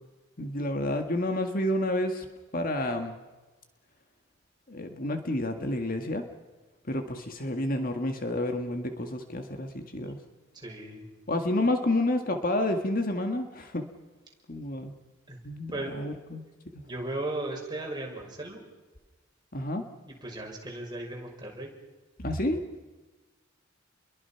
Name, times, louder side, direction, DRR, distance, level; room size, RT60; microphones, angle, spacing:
voice 1, 0.4-2.3 2.5-3.2 4.7-6.2 6.9-10.2 11.3-13.9 14.5-14.9 15.4-16.4 19.5-19.8 22.2-22.6, left 1 dB, 45° left, 5 dB, 1.9 m, -29 dB
voice 2, 10.5-11.0 15.3-15.4 15.7-15.9 16.8-18.6 20.1-21.7, right 2 dB, 20° right, 0 dB, 6.2 m, -36 dB
29.5 x 22.5 x 5.9 m, 1.2 s
head